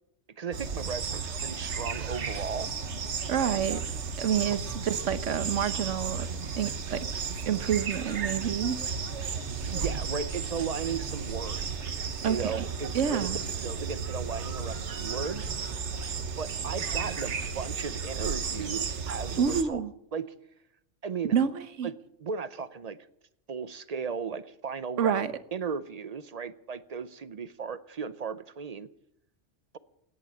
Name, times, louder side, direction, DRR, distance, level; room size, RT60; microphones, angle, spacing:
voice 1, 0.4-2.7 9.3-11.9 12.2-13.3 13.6-15.5 16.4-19.8 20.1-20.3 21.0-21.3 21.8-23.0 23.5-25.2 25.5-28.9, right 6 dB, 40° right, 0.6 m, -36 dB
sound 1, 0.5-19.6, right 5 dB, 70° right, 1.4 m, -34 dB
voice 2, 3.3-3.8 4.2-6.3 6.6-7.0 7.5-8.8 12.2-12.7 12.9-13.4 19.4-19.9 21.3-21.9 25.0-25.3, right 8 dB, 90° right, 1.3 m, -28 dB
17.0 x 10.0 x 7.7 m
omnidirectional pair, 1.2 m